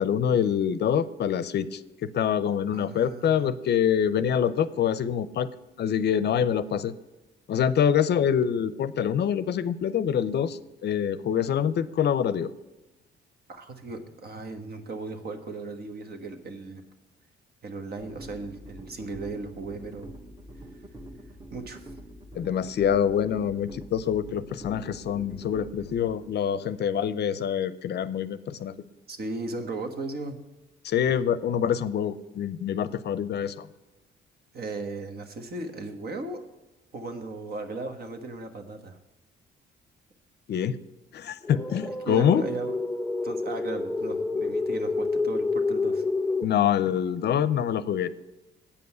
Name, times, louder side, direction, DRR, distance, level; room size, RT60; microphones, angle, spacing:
voice 1, 0.0-5.5 5.8-6.9 7.5-12.5 22.4-28.7 30.8-33.7 40.5-40.8 41.1-42.4 46.4-48.1, left 8 dB, 60° left, 15 dB, 0.5 m, -25 dB
voice 2, 2.7-3.5 13.5-16.8 17.6-20.1 21.5-21.9 29.1-30.4 34.5-36.4 36.9-39.0 42.1-42.7 43.2-46.1, right 3 dB, 50° right, 7 dB, 1.4 m, -36 dB
sound 1, 18.0-28.1, right 1 dB, 20° right, 1.2 m, -46 dB
sound 2, 41.4-46.4, left 3 dB, 10° left, 0.4 m, -28 dB
8.5 x 5.4 x 7.9 m, 1.1 s
cardioid pair, 90°, 20 cm